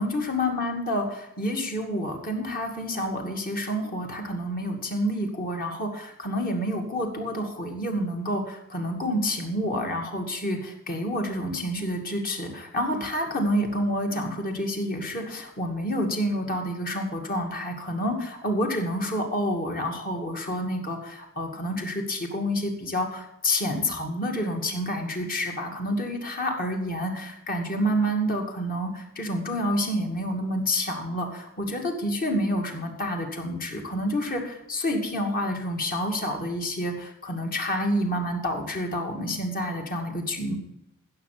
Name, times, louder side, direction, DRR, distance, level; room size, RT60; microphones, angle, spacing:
voice 1, 0.0-40.6, equal, 40° left, 2 dB, 2.4 m, -28 dB
15.5 x 6.9 x 6.1 m, 0.84 s
head